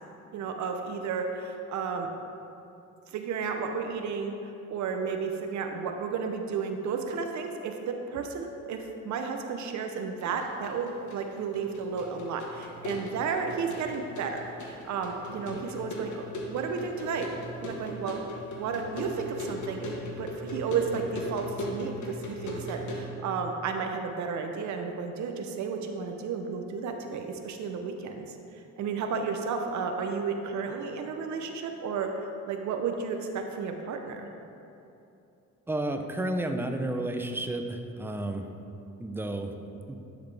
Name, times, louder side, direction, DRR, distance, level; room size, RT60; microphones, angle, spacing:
voice 1, 0.3-2.1 3.1-17.3 17.6-18.3 18.5-28.4 28.8-34.3, right 5 dB, 70° right, 4 dB, 0.6 m, -33 dB
sound 1, 10.2-23.1, left 1 dB, 75° left, 1.3 m, -39 dB
voice 2, 35.7-38.5 39.0-39.5 39.9-40.0, right 1 dB, 5° right, 5 dB, 0.5 m, -31 dB
10.5 x 4.0 x 3.3 m, 2.8 s
cardioid pair, 90°, 30 cm